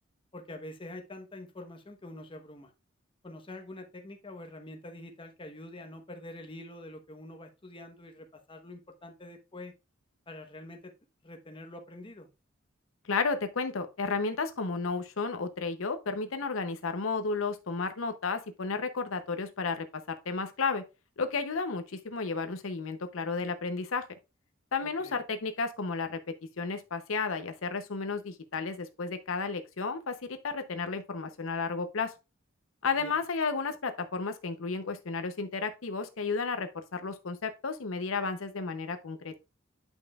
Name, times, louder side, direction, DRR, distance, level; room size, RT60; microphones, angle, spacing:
voice 1, 0.3-2.7 3.2-9.7 10.3-10.9 11.2-12.3 24.8-25.2 33.0-33.2, left 1 dB, 25° left, 1.0 m, -46 dB
voice 2, 13.1-20.8 21.2-24.0 24.7-26.2 26.6-32.1 32.8-39.3, left 4 dB, 80° left, 0.7 m, -32 dB
9.0 x 5.4 x 2.4 m
head